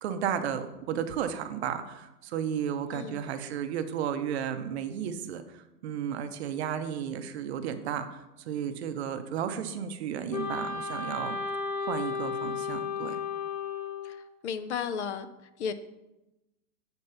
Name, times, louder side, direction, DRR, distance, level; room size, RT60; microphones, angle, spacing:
voice 1, 0.0-11.4 11.9-13.2, right 8 dB, 45° right, 0.7 m, -33 dB
voice 2, 2.9-3.3 14.0-15.7, left 7 dB, 45° left, 0.6 m, -35 dB
Wind instrument woodwind instrument, 10.3-14.3, left 5 dB, 15° left, 0.9 m, -34 dB
8.2 x 4.4 x 5.5 m
hypercardioid pair, 150°, 48 cm